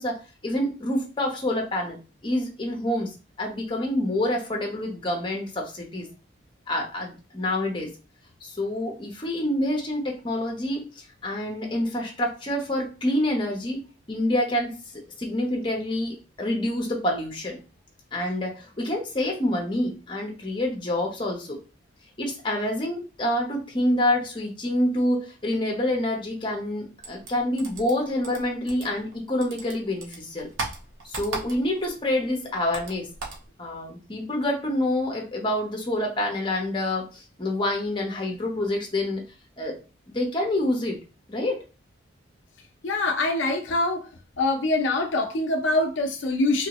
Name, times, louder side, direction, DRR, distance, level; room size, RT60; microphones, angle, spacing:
voice 1, 0.0-2.0 2.2-6.1 6.7-7.9 8.4-13.8 14.1-17.6 18.1-21.6 22.2-30.5 31.0-33.1 33.6-39.2 39.6-39.8 40.1-41.0 41.3-41.6, left 1 dB, 25° left, 1 dB, 0.8 m, -27 dB
sound 1, 27.0-29.1 29.4-31.9 32.2-33.5, right 3 dB, 85° right, 0.9 m, -36 dB
voice 2, 42.8-44.1 44.4-46.7, left 2 dB, 70° left, 4 dB, 0.5 m, -24 dB
3.1 x 2.7 x 2.9 m, 0.32 s
head